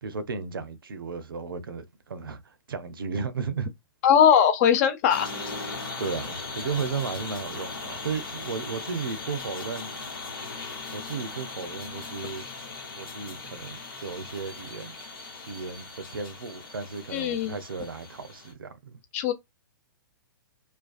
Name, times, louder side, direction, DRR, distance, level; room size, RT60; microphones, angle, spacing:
voice 1, 0.0-3.7 6.0-9.9 10.9-12.5 13.0-14.9 15.5-19.0, right 5 dB, 85° right, 0.5 m, -34 dB
voice 2, 4.0-5.3 17.1-17.6 19.1-19.3, left 8 dB, 45° left, 0.6 m, -20 dB
sound 1, 5.1-18.5, left 3 dB, 90° left, 1.1 m, -39 dB
2.4 x 2.3 x 2.3 m
hypercardioid pair, 125°, 11 cm